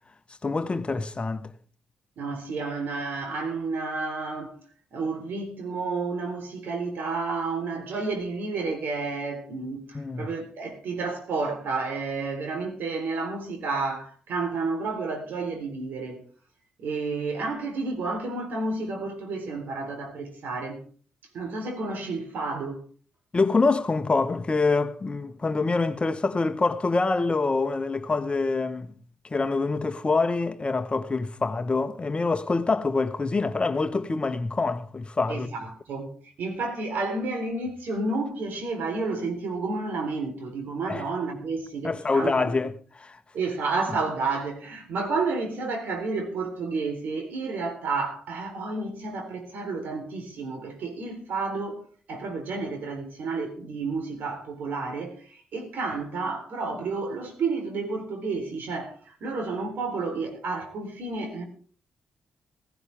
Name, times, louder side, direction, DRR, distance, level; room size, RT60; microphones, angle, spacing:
voice 1, 0.4-1.5 9.9-10.3 23.3-28.9 29.3-35.5 40.9-41.0 41.8-43.2, left 3 dB, 30° left, 1.2 m, -25 dB
voice 2, 2.2-4.6 4.9-16.2 16.8-20.8 21.3-22.8 35.3-36.1 36.4-42.5 43.3-51.8 52.1-61.4, right 3 dB, 65° right, 3.8 m, -31 dB
16.0 x 15.5 x 3.5 m
hypercardioid pair, 45°, 3 cm